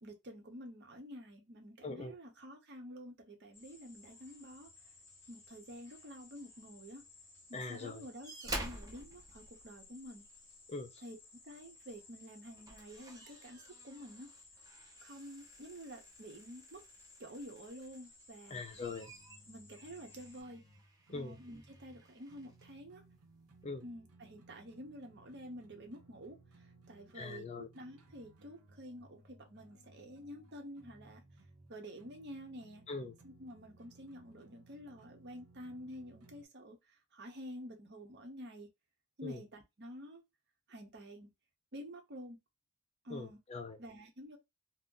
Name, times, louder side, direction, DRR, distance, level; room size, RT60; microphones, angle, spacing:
voice 1, 0.0-4.7 5.3-7.0 7.5-10.2 11.0-11.2 11.4-14.3 15.0-16.8 17.2-18.6 19.5-20.6 21.1-23.0 23.8-26.4 26.9-31.2 31.7-32.8 33.2-36.8 37.1-38.7 39.2-40.2 40.7-41.3 41.7-42.4 43.0-43.4 43.8-44.4, equal, 50° right, 0.8 m, -49 dB
voice 2, 1.8-2.1 7.5-8.1 10.7-11.0 18.5-19.1 21.1-21.4 23.6-23.8 27.1-27.7 32.9-33.1 39.2-39.4 43.1-43.8, left 3 dB, 30° left, 0.4 m, -42 dB
sound 1, 3.5-20.4, left 3 dB, 10° left, 0.9 m, -59 dB
sound 2, 8.2-10.2 11.8-12.0 12.4-18.1 18.5-22.7 23.6-23.7, right 2 dB, 15° right, 0.6 m, -50 dB
sound 3, 18.7-36.4, right 2 dB, 85° right, 0.8 m, -62 dB
2.6 x 2.1 x 3.7 m
head